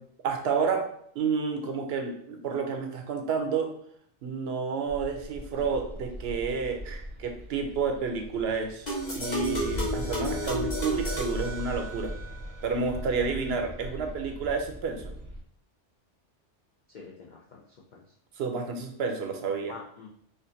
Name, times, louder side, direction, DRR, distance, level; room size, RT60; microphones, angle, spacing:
voice 1, 0.2-0.8 1.1-3.7 4.2-8.9 9.1-12.1 12.6-15.1 18.4-19.7, right 5 dB, 65° right, 4 dB, 0.8 m, -30 dB
sound 1, 4.9-15.4, equal, 20° right, 0.5 m, -39 dB
sound 2, 8.9-12.3, equal, 40° left, 1.1 m, -32 dB
voice 2, 16.9-18.0 19.7-20.1, left 4 dB, 55° left, -2 dB, 0.5 m, -46 dB
4.4 x 2.5 x 2.7 m, 0.65 s
omnidirectional pair, 1.2 m